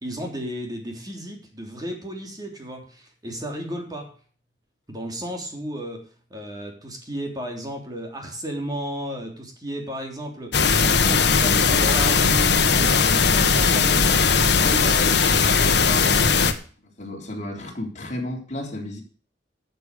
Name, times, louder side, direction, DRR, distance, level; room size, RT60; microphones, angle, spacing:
voice 1, 0.0-4.1 4.9-14.2 14.6-16.3, equal, 20° right, 2 dB, 3.2 m, -34 dB
sound 1, 10.5-16.5, left 5 dB, 65° left, 1.3 m, -18 dB
voice 2, 16.8-19.0, left 1 dB, 40° left, 0 dB, 3.5 m, -33 dB
12.5 x 6.9 x 6.6 m, 0.41 s
head